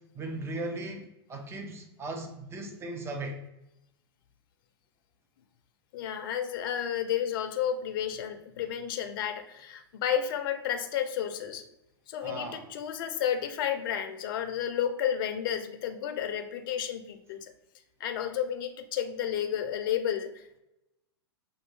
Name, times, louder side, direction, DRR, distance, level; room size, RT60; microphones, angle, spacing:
voice 1, 0.1-3.4 12.2-12.6, right 2 dB, 20° right, 3 dB, 0.8 m, -37 dB
voice 2, 5.9-11.6 12.1-17.5 18.0-20.6, left 9 dB, 55° left, 7 dB, 0.6 m, -32 dB
6.0 x 2.7 x 3.1 m, 0.89 s
hypercardioid pair, 110°, 14 cm